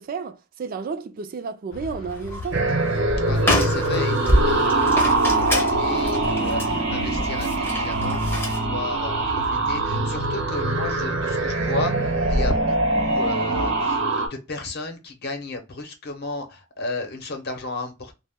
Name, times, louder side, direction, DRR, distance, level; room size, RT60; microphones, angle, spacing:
voice 1, 0.0-2.7, right 5 dB, 50° right, 0.3 m, -32 dB
sound 1, 1.7-12.6, left 2 dB, 90° left, 0.3 m, -38 dB
sound 2, 2.1-2.6 2.9-3.0 3.3-8.6, left 1 dB, 10° left, 0.6 m, -26 dB
sound 3, 2.5-14.3, right 2 dB, 80° right, 0.7 m, -23 dB
voice 2, 3.3-8.4 8.7-18.1, left 2 dB, 55° left, 0.7 m, -34 dB
2.1 x 2.0 x 3.3 m
head